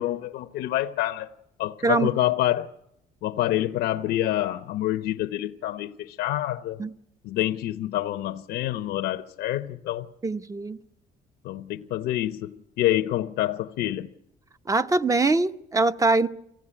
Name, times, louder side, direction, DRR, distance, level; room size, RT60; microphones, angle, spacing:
voice 1, 0.0-1.3 1.6-2.7 3.2-6.8 7.2-10.1 11.4-14.1, left 14 dB, 80° left, 0.8 m, -27 dB
voice 2, 10.2-10.8 14.7-16.3, right 3 dB, 20° right, 0.8 m, -23 dB
24.0 x 16.0 x 9.9 m
cardioid pair, 110°, 17 cm